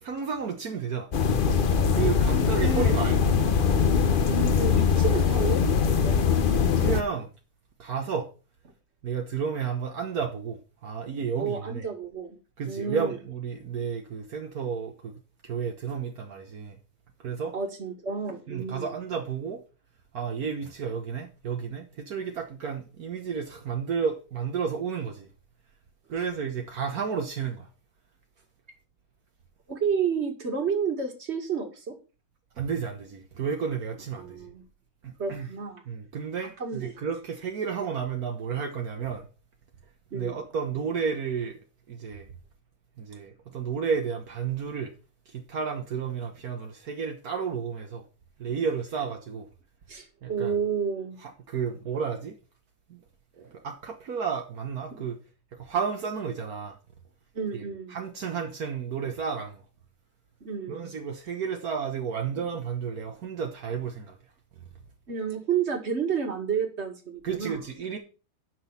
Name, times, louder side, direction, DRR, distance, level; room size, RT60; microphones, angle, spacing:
voice 1, 0.0-1.1 1.9-3.3 6.8-7.3 7.8-8.3 9.0-11.9 12.6-15.1 15.4-16.8 17.2-17.5 18.5-19.6 20.1-25.3 26.1-27.7 32.6-34.4 35.0-35.5 35.9-39.3 40.1-41.6 41.9-42.3 43.0-44.9 45.3-48.0 48.4-49.5 50.2-50.5 51.2-52.4 52.9-53.0 53.4-55.2 55.6-56.8 57.5-59.6 60.7-64.2 67.2-68.0, right 6 dB, 70° right, 1.6 m, -32 dB
sound 1, 1.1-7.0, left 6 dB, 45° left, 0.8 m, -22 dB
voice 2, 2.3-2.9 4.4-6.2 11.4-12.4 12.6-13.2 17.5-18.9 29.7-31.9 34.2-34.6 35.2-35.8 36.6-36.9 40.1-40.4 49.9-51.2 54.9-55.0 57.3-58.0 60.4-60.9 65.1-67.6, right 6 dB, 45° right, 2.3 m, -31 dB
11.0 x 6.1 x 5.7 m
omnidirectional pair, 1.6 m